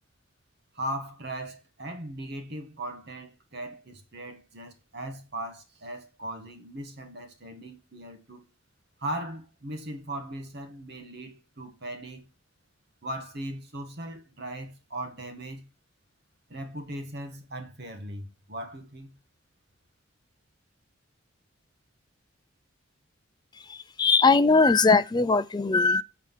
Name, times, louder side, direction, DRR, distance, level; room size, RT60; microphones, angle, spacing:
voice 1, 0.7-8.5 9.0-12.3 13.0-15.7 16.5-19.1, right 1 dB, 50° right, 1.4 m, -38 dB
voice 2, 23.7-26.0, left 4 dB, 20° left, 0.3 m, -20 dB
7.5 x 4.3 x 5.6 m
head